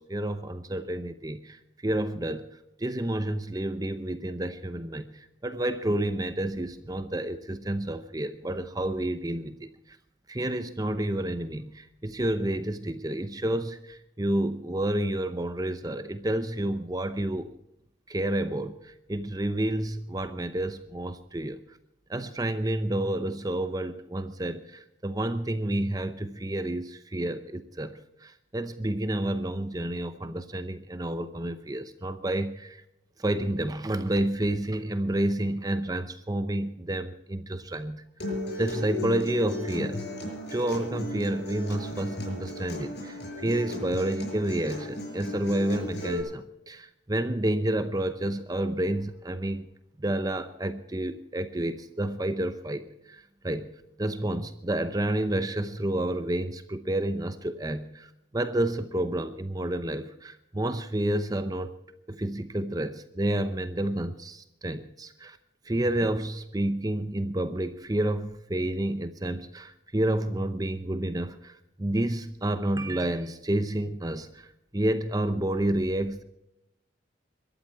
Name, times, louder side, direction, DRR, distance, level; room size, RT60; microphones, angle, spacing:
voice 1, 0.0-2.5 2.8-10.0 10.3-17.5 18.1-21.6 22.1-32.8 33.2-49.7 50.0-53.7 54.0-61.7 62.1-65.4 65.7-74.5 74.7-76.2, right 1 dB, 20° right, 10 dB, 0.7 m, -30 dB
Acoustic guitar, 38.2-46.2, left 1 dB, 60° left, 6.7 m, -35 dB
23.0 x 13.0 x 4.7 m, 0.86 s
head